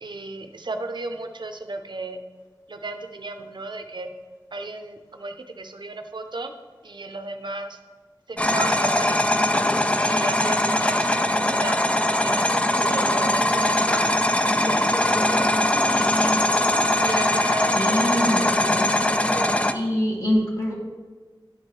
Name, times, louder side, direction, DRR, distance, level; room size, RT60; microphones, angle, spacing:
voice 1, 0.0-2.2 2.7-4.1 4.5-6.5 6.8-7.8 8.3-9.2 10.0-11.8 12.1-14.1 14.7-16.3 16.7-17.9, right 2 dB, 70° right, 6 dB, 0.5 m, -35 dB
sound 1, 8.4-19.7, left 1 dB, 15° left, 0.3 m, -21 dB
voice 2, 17.7-18.5 19.1-19.3 19.7-20.7, equal, 45° left, -4 dB, 2.0 m, -24 dB
10.0 x 4.5 x 3.1 m, 1.4 s
wide cardioid pair, 55°, 8 cm